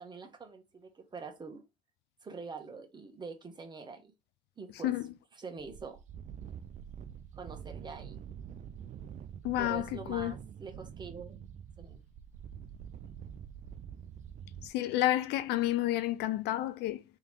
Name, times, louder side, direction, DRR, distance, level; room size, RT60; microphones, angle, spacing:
voice 1, 0.0-1.6 2.2-4.1 4.6-4.9 5.4-6.0 7.4-8.2 9.6-11.4 11.8-12.0, right 4 dB, 25° right, 1.2 m, -45 dB
voice 2, 4.7-5.2 9.4-10.4 14.6-17.0, left 14 dB, 80° left, 0.4 m, -30 dB
sound 1, 5.6-14.7, right 8 dB, 45° right, 0.4 m, -46 dB
3.5 x 3.0 x 3.6 m
cardioid pair, 110°, 17 cm